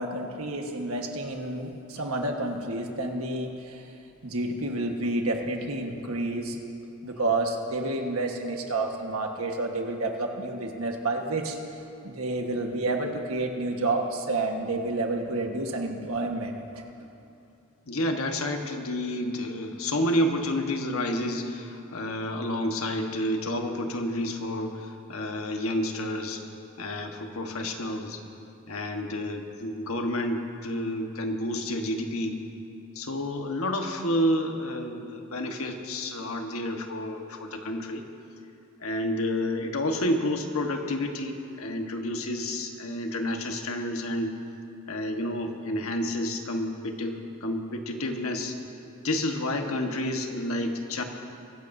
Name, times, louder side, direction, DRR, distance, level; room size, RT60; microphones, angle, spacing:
voice 1, 0.0-3.9 4.2-6.6 7.0-11.6 12.0-17.1, right 2 dB, 85° right, 2 dB, 1.5 m, -30 dB
voice 2, 17.9-26.4 26.8-28.2 28.7-32.4 32.9-38.0 38.8-44.3 44.9-48.5 49.0-51.0, left 1 dB, 85° left, 3 dB, 1.4 m, -30 dB
24.0 x 14.5 x 2.7 m, 2.6 s
head